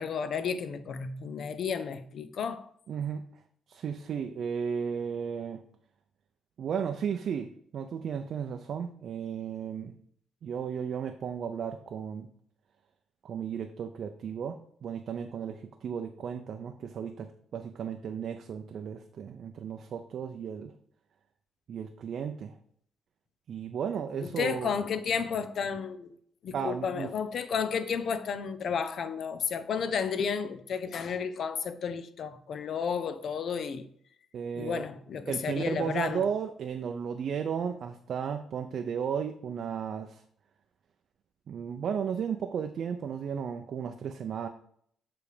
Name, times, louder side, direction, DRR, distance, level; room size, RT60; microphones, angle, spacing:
voice 1, 0.0-2.7 24.2-26.1 26.4-33.9 34.6-36.2, left 6 dB, 60° left, 0.6 m, -32 dB
voice 2, 2.9-3.2 3.7-5.6 6.6-9.9 10.4-12.3 13.2-20.7 21.7-22.6 23.5-24.7 26.5-27.1 34.3-34.8 35.3-40.2 41.5-44.5, right 7 dB, 60° right, 0.5 m, -34 dB
7.1 x 3.4 x 4.9 m
cardioid pair, 90°, 0 cm